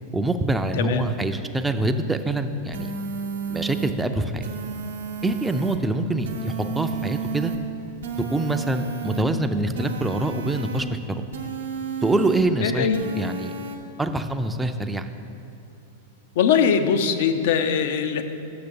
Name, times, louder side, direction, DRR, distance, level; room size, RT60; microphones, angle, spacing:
voice 1, 0.1-2.9 3.5-4.5 5.2-7.5 8.3-11.3 12.0-12.9 13.2-13.5 14.0-15.1, right 2 dB, 10° right, 7 dB, 0.4 m, -25 dB
voice 2, 0.7-1.1 12.6-13.0 16.4-18.2, left 7 dB, 65° left, 9 dB, 0.5 m, -21 dB
sound 1, 2.7-3.9 4.4-5.8 6.2-7.6 8.0-9.2 9.7-10.8 11.3-12.4 12.9-13.8, right 5 dB, 85° right, 0.8 m, -32 dB
6.8 x 6.0 x 5.3 m, 2.8 s
hypercardioid pair, 115°, 0 cm